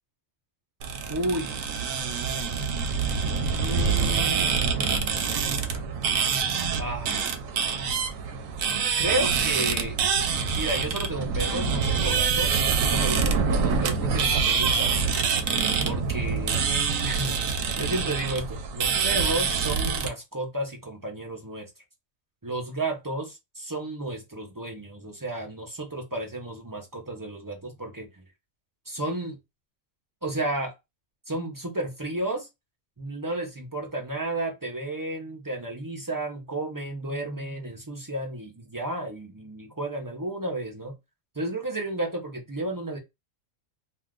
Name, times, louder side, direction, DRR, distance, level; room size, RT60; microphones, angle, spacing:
sound 1, 0.8-20.1, right 5 dB, 75° right, 1.0 m, -25 dB
voice 1, 1.1-1.6 3.5-4.6 6.8-7.3 9.0-10.0 10.5-15.0 15.8-16.7 17.0-17.3 17.8-21.7 22.4-28.1 28.9-29.4 30.2-30.7 31.3-32.5 33.0-40.9 41.3-43.0, right 1 dB, 30° right, 0.4 m, -32 dB
2.5 x 2.4 x 3.4 m
omnidirectional pair, 1.4 m